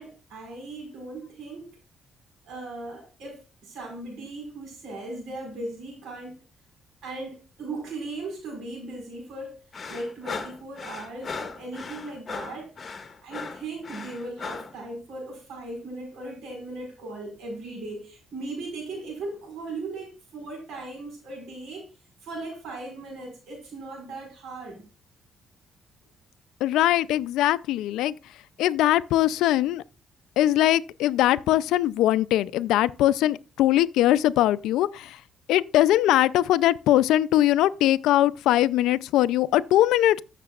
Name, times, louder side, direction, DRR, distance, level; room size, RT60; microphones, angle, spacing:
voice 1, 0.0-1.7 2.4-6.4 7.0-9.6 9.9-12.7 13.2-21.9 22.2-24.8, right 2 dB, 80° right, 4.8 m, -38 dB
sound 1, 9.7-14.8, left 5 dB, 35° left, 1.5 m, -37 dB
voice 2, 26.6-28.1 28.6-29.8 30.4-35.2 35.5-40.2, left 13 dB, 90° left, 0.4 m, -21 dB
14.0 x 6.7 x 2.4 m
cardioid pair, 90°, 0 cm